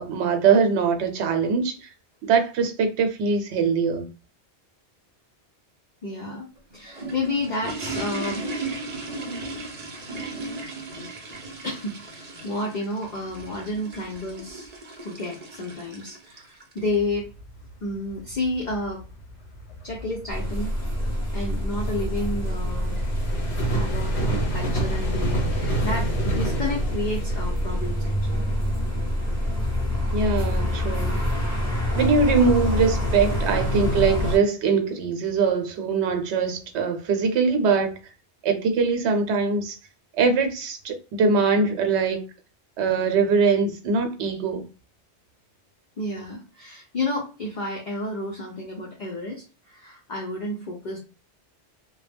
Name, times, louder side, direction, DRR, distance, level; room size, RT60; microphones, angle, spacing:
voice 1, 0.0-1.9 2.2-4.1 30.1-31.1 31.9-38.0 38.4-39.8 40.2-42.2 42.8-44.6, right 5 dB, 80° right, 0.9 m, -22 dB
voice 2, 6.0-8.5 11.6-14.7 15.0-17.3 17.8-19.0 19.8-20.7 21.3-23.0 23.7-28.5 46.0-51.0, left 2 dB, 50° left, 0.6 m, -31 dB
sound 1, 6.6-16.9, right 2 dB, 45° right, 0.6 m, -36 dB
sound 2, 16.9-33.3, right 1 dB, 70° left, 1.1 m, -32 dB
sound 3, 20.3-34.4, left 1 dB, 15° left, 0.7 m, -26 dB
2.2 x 2.0 x 3.3 m
omnidirectional pair, 1.1 m